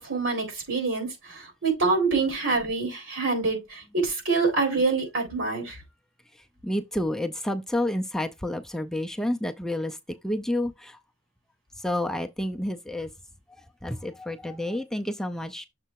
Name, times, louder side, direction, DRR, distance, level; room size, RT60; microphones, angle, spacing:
voice 1, 0.0-5.8, right 3 dB, 80° right, 4.0 m, -26 dB
voice 2, 6.6-10.0 10.2-11.0 11.8-13.1 13.8-15.7, left 1 dB, ahead, 0.5 m, -29 dB
6.8 x 3.3 x 4.6 m
head